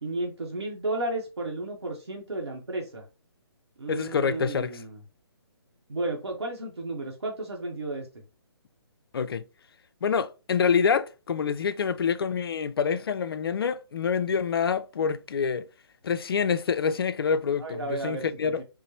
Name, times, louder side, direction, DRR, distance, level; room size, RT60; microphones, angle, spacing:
voice 1, 0.0-3.1 3.8-5.0 5.9-8.2 17.6-18.6, right 2 dB, 80° right, 0.9 m, -33 dB
voice 2, 3.9-4.7 9.1-9.4 10.0-15.7 16.0-18.6, left 6 dB, 65° left, 0.4 m, -26 dB
3.8 x 2.0 x 2.7 m
figure-of-eight pair, 140°, 14 cm